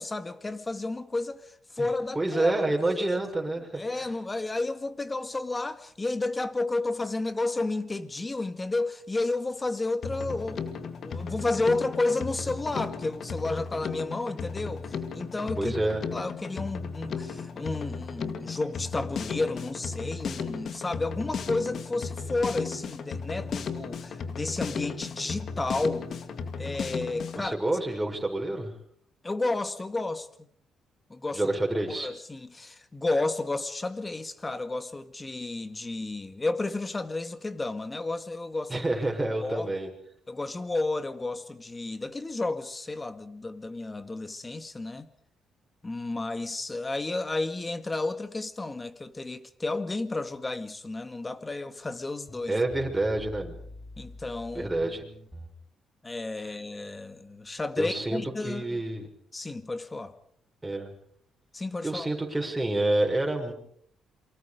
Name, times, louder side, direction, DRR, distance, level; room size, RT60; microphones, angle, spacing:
voice 1, 0.0-2.7 3.0-3.2 3.8-15.7 16.1-26.1 26.6-27.6 29.2-30.5 31.1-31.4 31.9-38.7 39.4-39.7 40.3-45.1 45.8-52.6 54.0-54.7 56.0-58.8 59.3-60.1 61.5-62.1, left 2 dB, 20° left, 2.1 m, -32 dB
voice 2, 2.1-4.1 15.6-16.0 27.3-28.7 31.3-32.1 38.7-39.9 52.5-53.6 54.5-55.0 57.8-59.1 60.6-60.9 61.8-63.5, right 2 dB, 15° right, 6.4 m, -28 dB
Drum kit, 10.0-27.5, left 5 dB, 55° left, 2.2 m, -35 dB
sound 1, 52.2-55.5, equal, ahead, 5.4 m, -45 dB
28.0 x 24.5 x 5.2 m
cardioid pair, 90°, 0 cm